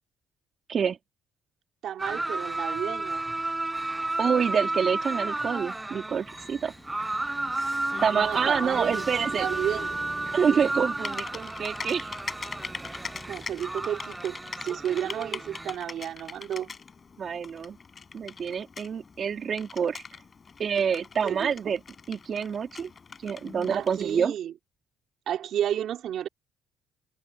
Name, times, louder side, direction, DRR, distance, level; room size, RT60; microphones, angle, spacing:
voice 1, 1.8-3.2 8.1-9.0 9.3-10.0 13.3-14.4 14.6-16.7 21.2-21.7 23.7-24.5 25.3-26.3, right 10 dB, 65° right, 4.0 m, -32 dB
sound 1, 2.0-15.7, right 2 dB, 10° right, 0.5 m, -32 dB
voice 2, 4.2-6.7 8.0-9.5 10.3-12.1 14.7-14.8 15.1-15.4 17.2-17.8 18.1-20.0 20.6-21.8 22.1-22.9 23.2-24.3, right 7 dB, 45° right, 3.5 m, -27 dB
Typing, 6.1-24.2, left 5 dB, 35° left, 4.8 m, -43 dB
cardioid pair, 115°, 0 cm